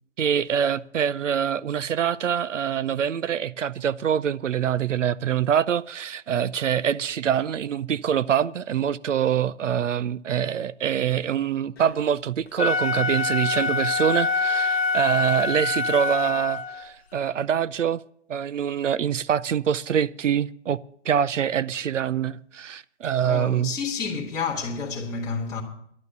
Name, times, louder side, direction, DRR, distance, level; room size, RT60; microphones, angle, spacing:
voice 1, 0.2-18.0 18.3-20.8 21.0-23.8, right 9 dB, 80° right, 0.6 m, -25 dB
Wind instrument woodwind instrument, 12.5-16.9, left 3 dB, 55° left, 0.9 m, -25 dB
voice 2, 23.2-25.6, left 5 dB, 10° left, 1.7 m, -30 dB
11.5 x 9.6 x 6.7 m
hypercardioid pair, 160°, 37 cm